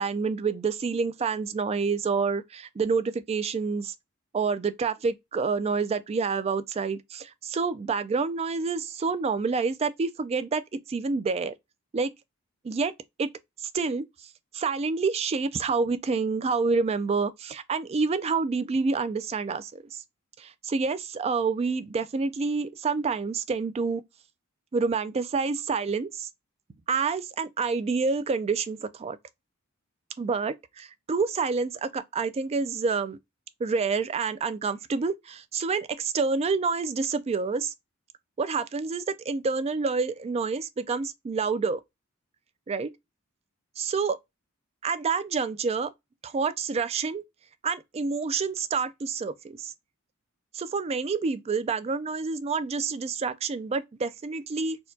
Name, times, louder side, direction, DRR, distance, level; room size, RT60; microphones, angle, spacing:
voice 1, 0.0-3.9 4.3-10.6 10.9-11.5 11.9-12.1 12.6-12.9 13.2-13.3 13.6-14.0 14.5-20.0 20.4-24.0 24.7-26.3 26.9-29.2 30.2-33.2 33.6-37.7 38.4-41.8 42.7-42.9 43.8-44.2 44.8-45.9 46.2-47.2 47.6-49.7 50.5-54.8, right 4 dB, 30° right, 0.3 m, -28 dB
4.3 x 2.2 x 2.6 m
head